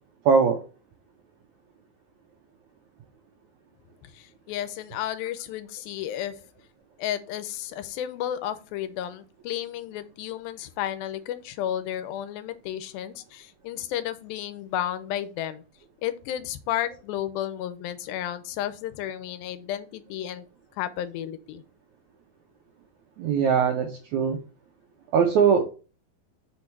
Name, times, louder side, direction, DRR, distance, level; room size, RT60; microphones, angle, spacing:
voice 1, 0.3-0.6 23.2-24.4 25.1-25.6, right 6 dB, 80° right, 3 dB, 1.7 m, -21 dB
voice 2, 4.0-6.4 7.0-15.6 16.0-20.5 20.8-21.6, left 11 dB, 85° left, 11 dB, 2.4 m, -32 dB
5.7 x 4.4 x 4.5 m, 0.35 s
omnidirectional pair, 4.2 m